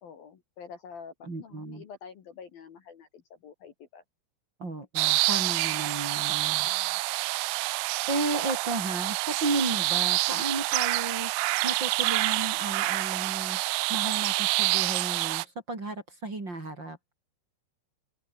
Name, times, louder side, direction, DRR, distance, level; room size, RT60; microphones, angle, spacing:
voice 1, 0.0-4.0 6.5-7.0, left 6 dB, 55° left, 3.6 m, -47 dB
voice 2, 1.2-1.8 4.6-6.7 8.1-11.3 11.6-13.6 13.9-17.0, right 2 dB, 25° right, 4.7 m, -33 dB
sound 1, 5.0-15.4, right 23 dB, 85° right, 2.7 m, -27 dB
open air
omnidirectional pair, 5.7 m